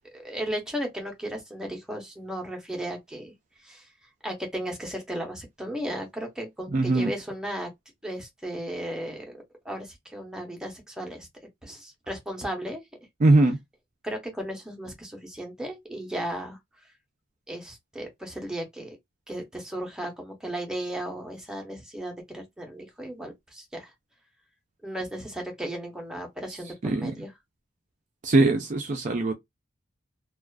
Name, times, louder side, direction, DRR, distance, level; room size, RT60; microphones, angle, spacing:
voice 1, 0.1-3.3 3.6-3.9 4.2-7.7 8.0-9.4 9.6-11.3 11.6-12.8 14.0-16.6 17.5-19.0 19.3-23.9 24.8-27.3, right 1 dB, 5° right, 0.7 m, -35 dB
voice 2, 6.7-7.1 13.2-13.6 26.8-27.1 28.2-29.3, right 2 dB, 40° right, 0.4 m, -21 dB
2.4 x 2.3 x 2.2 m
head